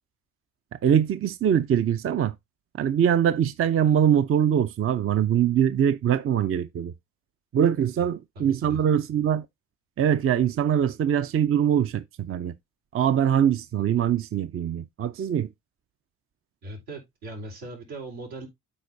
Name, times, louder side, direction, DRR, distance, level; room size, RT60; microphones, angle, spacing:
voice 1, 0.8-2.3 2.8-6.9 7.5-9.4 10.0-12.5 12.9-15.5, right 9 dB, 35° right, 0.6 m, -23 dB
voice 2, 8.3-8.8 16.6-18.5, right 2 dB, 80° right, 4.3 m, -39 dB
12.5 x 4.4 x 2.6 m
hypercardioid pair, 55°, 41 cm